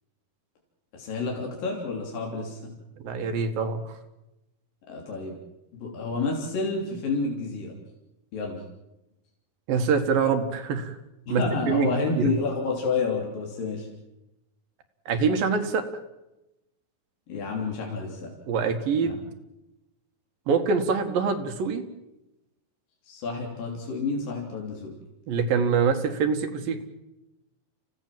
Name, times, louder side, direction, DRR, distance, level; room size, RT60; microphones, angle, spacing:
voice 1, 0.9-2.7 4.9-5.3 5.8-7.8 8.3-8.6 11.3-13.9 17.3-18.3 19.0-19.1 23.0-24.9, left 3 dB, 75° left, -1 dB, 5.1 m, -29 dB
voice 2, 3.0-3.9 9.7-11.0 11.3-12.3 15.1-15.8 18.5-19.2 20.5-21.9 25.3-26.8, right 5 dB, 75° right, 8 dB, 3.5 m, -25 dB
29.5 x 16.5 x 7.6 m, 0.94 s
omnidirectional pair, 4.1 m